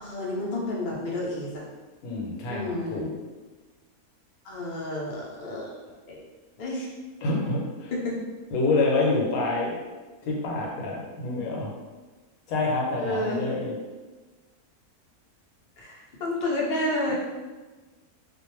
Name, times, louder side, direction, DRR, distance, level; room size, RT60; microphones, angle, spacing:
voice 1, 0.0-1.6 2.5-3.1 4.4-5.7 6.1-6.2 6.6-6.9 7.9-8.2 13.0-13.5 15.8-17.1, left 1 dB, 60° left, -4 dB, 0.5 m, -30 dB
voice 2, 2.0-3.1 7.2-7.9 8.5-9.7 10.2-11.7 12.5-13.7 17.1-17.2, left 3 dB, 75° left, -2 dB, 1.0 m, -27 dB
2.4 x 2.1 x 3.0 m, 1.3 s
omnidirectional pair, 1.6 m